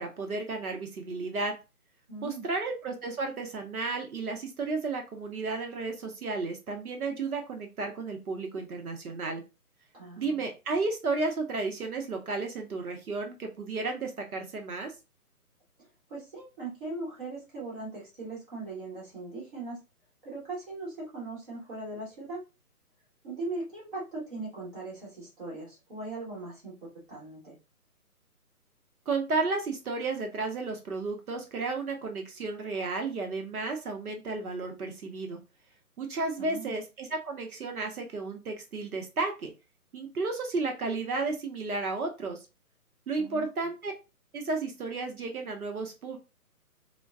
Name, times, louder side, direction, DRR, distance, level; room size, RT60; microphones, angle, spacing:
voice 1, 0.0-1.6 2.2-9.4 10.2-14.9 29.1-35.4 36.0-39.5 39.9-42.4 43.1-43.9 44.3-46.2, right 3 dB, 70° right, 4 dB, 0.8 m, -33 dB
voice 2, 2.1-2.5 9.9-10.4 16.1-19.8 20.2-22.4 23.2-26.8 27.1-27.5 36.4-36.7 43.2-43.5, right 2 dB, 35° right, -5 dB, 1.3 m, -39 dB
3.4 x 2.2 x 2.3 m, 0.28 s
hypercardioid pair, 160°, 46 cm